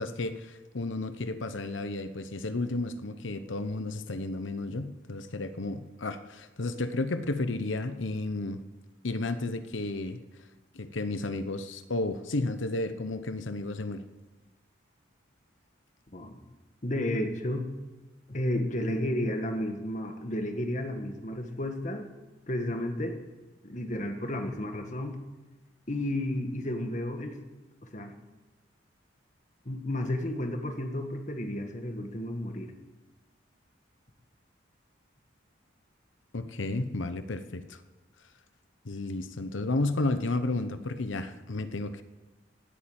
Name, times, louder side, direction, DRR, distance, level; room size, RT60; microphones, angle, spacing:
voice 1, 0.0-8.6 9.0-10.2 10.7-14.0 36.3-37.8 38.8-42.0, left 2 dB, 80° left, 11 dB, 0.9 m, -32 dB
voice 2, 16.8-17.7 18.3-22.1 22.5-23.2 23.6-25.2 25.9-27.4 27.9-28.1 29.6-32.7, left 1 dB, 40° left, 5 dB, 1.7 m, -32 dB
17.5 x 8.7 x 8.9 m, 1.1 s
head